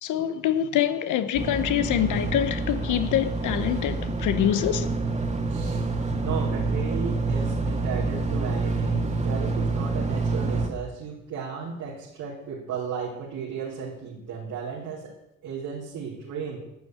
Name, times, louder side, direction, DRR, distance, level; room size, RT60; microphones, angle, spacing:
voice 1, 0.0-5.0, left 11 dB, 80° left, 1.1 m, -25 dB
sound 1, 1.3-10.7, right 3 dB, 25° right, 2.0 m, -27 dB
voice 2, 5.4-5.9 6.2-15.1 15.4-16.6, right 6 dB, 90° right, 4.2 m, -34 dB
12.5 x 7.3 x 9.4 m
cardioid pair, 90°, 30 cm